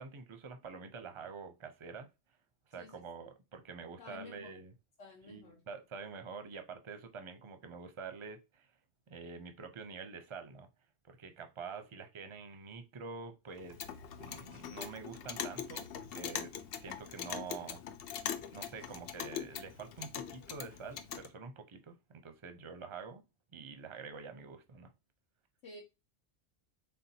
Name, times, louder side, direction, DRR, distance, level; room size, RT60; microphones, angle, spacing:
voice 1, 0.0-2.1 2.7-4.7 5.2-8.7 9.1-10.7 11.1-13.8 14.2-16.5 16.8-17.8 18.5-23.2 23.5-24.9, right 5 dB, 35° right, 0.6 m, -47 dB
voice 2, 4.0-4.6 5.0-5.6 25.6-25.8, left 3 dB, 85° left, 1.2 m, -52 dB
Clock, 13.6-21.3, left 8 dB, 65° left, 0.7 m, -42 dB
4.3 x 3.5 x 2.7 m
omnidirectional pair, 1.1 m